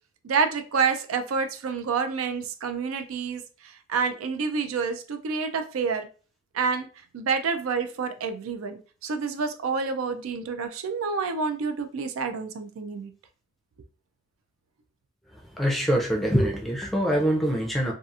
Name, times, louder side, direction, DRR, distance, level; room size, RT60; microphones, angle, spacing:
voice 1, 0.2-6.1 6.5-6.9 7.1-13.1, right 5 dB, 80° right, 8 dB, 0.4 m, -28 dB
voice 2, 15.5-17.9, equal, ahead, 0 dB, 0.4 m, -24 dB
2.7 x 2.4 x 2.3 m, 0.38 s
head